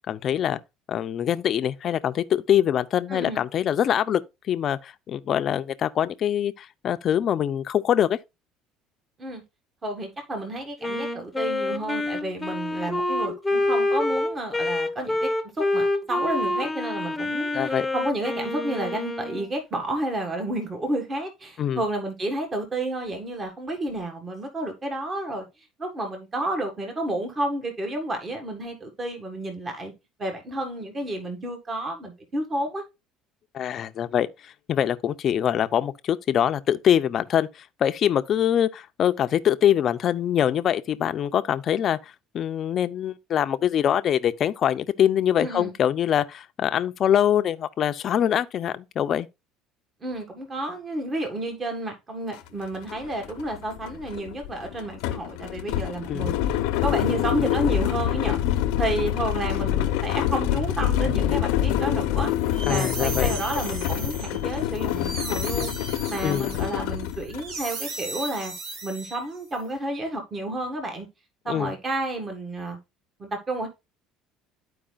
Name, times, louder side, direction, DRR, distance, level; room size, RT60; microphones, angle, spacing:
voice 1, 0.1-0.6 0.9-4.2 4.5-8.2 17.5-17.9 21.6-21.8 33.5-42.0 42.3-49.3 56.1-56.3 62.7-63.3 66.2-66.5 71.5-71.7, left 10 dB, 45° left, 0.6 m, -24 dB
voice 2, 3.1-3.4 9.2-9.4 9.8-15.3 15.6-25.5 25.8-29.9 30.2-32.8 45.4-45.8 50.0-56.6 56.8-58.4 58.8-62.3 62.7-65.7 66.1-68.5 68.8-71.1 71.5-72.8 73.2-73.7, right 1 dB, 25° right, 1.7 m, -31 dB
Wind instrument woodwind instrument, 10.8-19.5, left 2 dB, 5° left, 1.0 m, -27 dB
sound 1, 52.3-52.4 52.8-67.5, left 11 dB, 85° left, 0.7 m, -26 dB
sound 2, 62.3-69.5, right 3 dB, 60° right, 1.8 m, -37 dB
12.5 x 4.7 x 2.4 m
cardioid pair, 130°, 0 cm